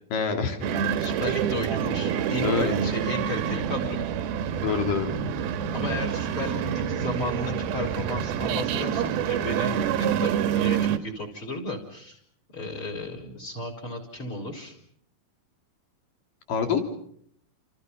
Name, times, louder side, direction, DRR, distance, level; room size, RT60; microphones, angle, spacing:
voice 1, 0.1-0.6 2.4-2.7 4.6-5.2 16.5-16.8, left 6 dB, 65° left, 5 dB, 4.8 m, -26 dB
sound 1, 0.6-11.0, right 8 dB, 85° right, 3.1 m, -27 dB
voice 2, 0.9-4.0 5.7-12.2 12.5-14.8, left 2 dB, 35° left, 5 dB, 5.2 m, -34 dB
29.5 x 28.5 x 5.6 m, 0.65 s
omnidirectional pair, 4.3 m